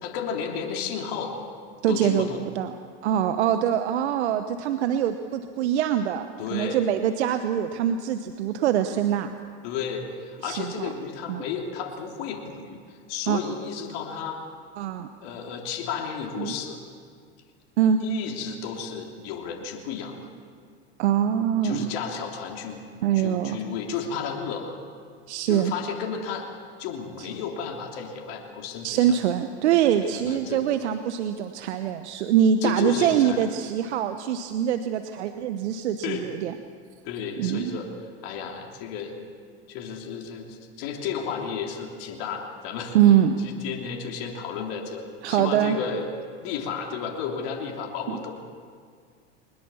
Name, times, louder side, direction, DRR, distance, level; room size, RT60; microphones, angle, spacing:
voice 1, 0.0-1.3 1.9-2.4 6.4-6.8 9.6-14.4 15.2-16.8 18.0-20.2 21.6-22.8 23.1-24.8 25.5-26.5 26.8-29.1 30.0-30.6 32.6-33.4 36.0-36.3 37.0-37.9 38.2-39.1 39.7-43.0 43.4-46.1 46.4-48.3, left 6 dB, 60° left, 1 dB, 3.3 m, -33 dB
voice 2, 1.8-2.7 3.0-6.3 6.5-9.3 10.4-10.9 11.3-11.4 13.3-13.4 14.8-15.1 16.4-16.5 17.8-18.0 21.0-21.9 23.0-23.6 25.3-25.7 27.2-27.3 28.8-36.5 37.4-37.7 42.9-43.4 45.2-45.8 48.1-48.2, right 9 dB, 75° right, 9 dB, 1.1 m, -24 dB
22.0 x 20.5 x 7.2 m, 2.1 s
hypercardioid pair, 95°, 34 cm